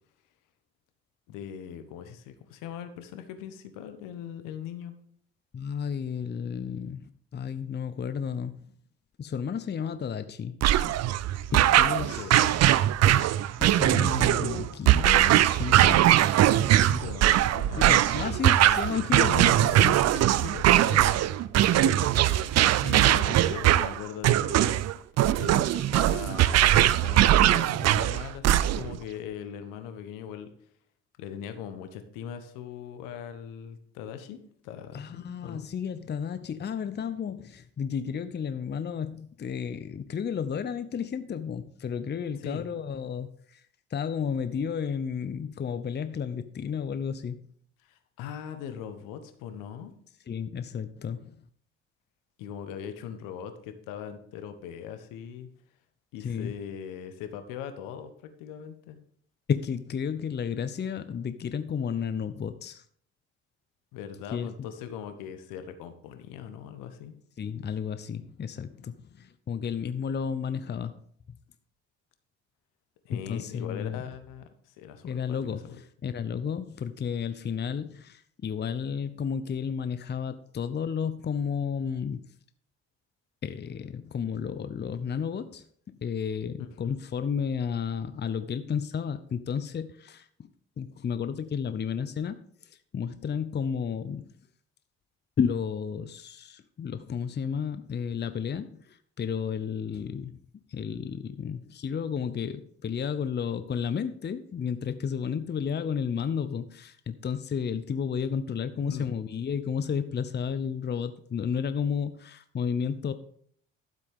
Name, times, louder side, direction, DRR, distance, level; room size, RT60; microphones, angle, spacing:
voice 1, 1.3-4.9 11.6-12.6 16.7-18.8 19.7-19.8 20.1-21.2 21.7-24.8 25.4-30.5 31.2-35.7 42.4-42.6 47.8-49.9 52.4-55.5 56.1-59.0 63.9-67.1 73.0-75.8 108.8-109.1, left 8 dB, 75° left, 9 dB, 1.3 m, -40 dB
voice 2, 5.5-8.6 9.2-10.6 11.5-12.3 13.6-16.3 17.8-20.1 20.4-20.5 20.9-21.0 34.9-43.6 43.9-47.5 50.3-51.4 56.2-56.6 59.5-62.8 64.3-64.7 67.4-71.0 71.3-71.4 73.1-74.0 75.0-82.2 83.4-90.3 90.8-92.4 92.6-94.3 95.4-100.4 100.7-113.1, left 7 dB, 30° left, 12 dB, 0.8 m, -32 dB
sound 1, 10.6-29.0, right 13 dB, 50° right, 0.6 m, -21 dB
12.5 x 7.6 x 3.7 m, 0.62 s
hypercardioid pair, 55°, 33 cm